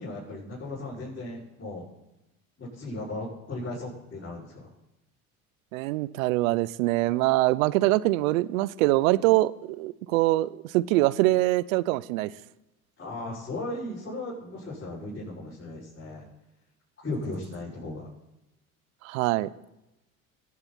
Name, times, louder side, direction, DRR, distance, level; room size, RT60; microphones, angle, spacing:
voice 1, 0.0-1.8 2.6-4.7 13.0-16.2 17.0-18.1, left 2 dB, 30° left, -10 dB, 6.3 m, -36 dB
voice 2, 5.7-12.3 19.0-19.5, right 18 dB, 70° right, 17 dB, 0.6 m, -24 dB
21.5 x 8.7 x 4.3 m, 0.92 s
hypercardioid pair, 70°, 42 cm